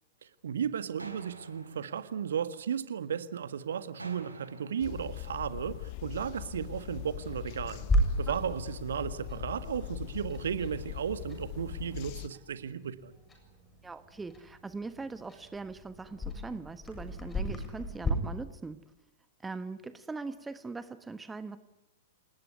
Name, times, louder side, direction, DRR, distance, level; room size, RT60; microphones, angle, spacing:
voice 1, 0.2-7.8 8.2-13.1, right 8 dB, 65° right, 13 dB, 1.6 m, -35 dB
sound 1, 1.0-3.1 4.0-6.1, right 2 dB, 85° right, 4.6 m, -50 dB
sound 2, 4.8-12.3, left 16 dB, 40° left, 1.0 m, -41 dB
Clock, 7.7-18.1, equal, 15° left, 7.3 m, -36 dB
voice 2, 13.8-18.8 19.4-21.6, right 3 dB, 10° right, 12 dB, 1.2 m, -41 dB
28.5 x 19.5 x 9.7 m, 0.95 s
figure-of-eight pair, 105°, 0 cm